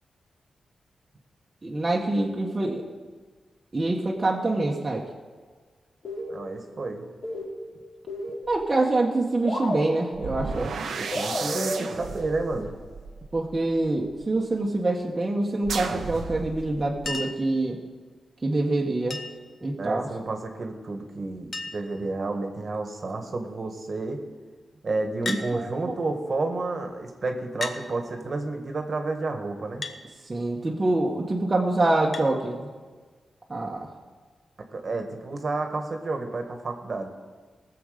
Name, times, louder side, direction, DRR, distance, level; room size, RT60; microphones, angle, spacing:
voice 1, 1.6-2.8 3.7-5.0 8.5-10.7 13.3-17.8 18.4-19.2 19.6-20.1 25.2-25.9 30.3-32.7 33.5-33.9, right 2 dB, 30° right, -2 dB, 1.4 m, -25 dB
sound 1, 6.0-6.8 7.1-8.8 9.1-9.2 9.4-10.6 11.1-12.6, left 1 dB, 70° left, 4.0 m, -33 dB
voice 2, 6.3-7.1 10.9-12.7 19.8-24.2 24.8-29.8 34.7-37.1, right 3 dB, 50° right, 4 dB, 1.6 m, -31 dB
sound 2, 8.5-8.6 10.1-14.2 15.6-17.1, right 5 dB, 80° right, 1.0 m, -34 dB
Chink clink, 17.1-17.5 19.1-19.5 20.9-21.0 21.2-21.3 21.5-22.0 22.7-23.1 25.2-25.5 26.6-26.7 27.6-27.8 29.8-30.0 32.1-32.3 33.7-33.8, left 3 dB, 50° left, 1.0 m, -34 dB
18.5 x 7.0 x 5.1 m, 1.4 s
cardioid pair, 85°, 0 cm